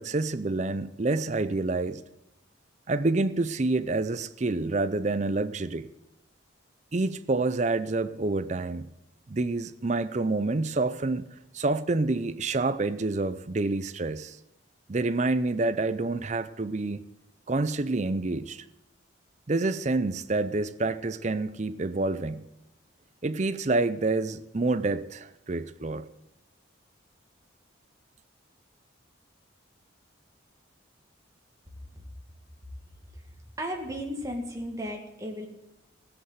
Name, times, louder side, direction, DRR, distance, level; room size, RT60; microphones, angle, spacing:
voice 1, 0.0-2.0 2.9-5.9 6.9-8.9 9.3-11.2 11.5-14.4 14.9-17.0 17.5-18.7 19.5-22.4 23.2-26.1, right 2 dB, 35° right, 0.5 m, -28 dB
voice 2, 33.6-35.5, equal, 15° right, 2.1 m, -35 dB
15.5 x 8.0 x 8.0 m
head